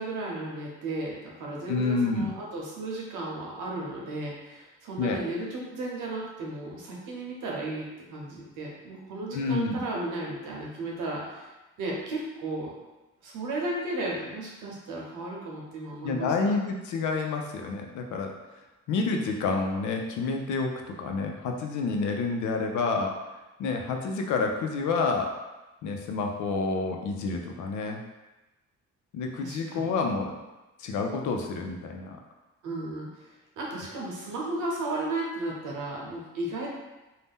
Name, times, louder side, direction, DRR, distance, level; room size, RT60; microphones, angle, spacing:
voice 1, 0.0-11.5 11.8-12.7 13.2-16.5 29.4-29.9 32.6-33.3 33.6-36.7, right 2 dB, 80° right, -3 dB, 0.9 m, -34 dB
voice 2, 1.7-2.3 5.0-5.2 9.3-9.8 16.0-18.3 18.9-23.1 23.6-25.3 25.8-28.0 29.1-30.3 30.8-32.2, left 4 dB, 75° left, 2 dB, 0.5 m, -29 dB
2.7 x 2.1 x 3.5 m, 1.1 s
cardioid pair, 90°, 30 cm